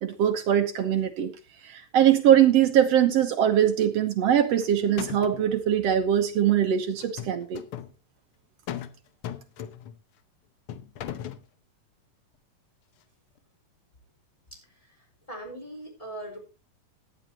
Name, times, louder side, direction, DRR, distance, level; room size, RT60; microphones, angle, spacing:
voice 1, 0.0-1.3 1.6-7.6, right 10 dB, 65° right, 7 dB, 1.9 m, -22 dB
sound 1, 4.3-4.7 5.0-5.5 7.0-7.9 8.7-9.0 9.2-10.0 10.7-11.5, left 11 dB, 85° left, 1.2 m, -37 dB
voice 2, 14.5-16.4, right 1 dB, 10° left, 0 dB, 4.0 m, -41 dB
16.5 x 10.5 x 3.0 m, 0.30 s
omnidirectional pair, 3.7 m